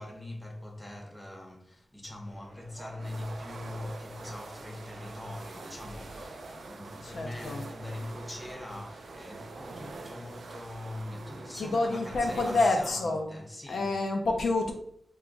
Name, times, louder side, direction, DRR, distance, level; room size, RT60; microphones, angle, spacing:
voice 1, 0.0-14.0, left 1 dB, 10° left, 0.5 m, -42 dB
sound 1, 2.2-12.4, right 1 dB, 45° right, 0.8 m, -50 dB
sound 2, 3.0-12.7, right 3 dB, 75° right, 0.3 m, -46 dB
voice 2, 7.0-7.7 11.5-13.3 13.7-14.7, left 2 dB, 65° left, 0.5 m, -28 dB
2.9 x 2.3 x 3.7 m
wide cardioid pair, 165°, 0 cm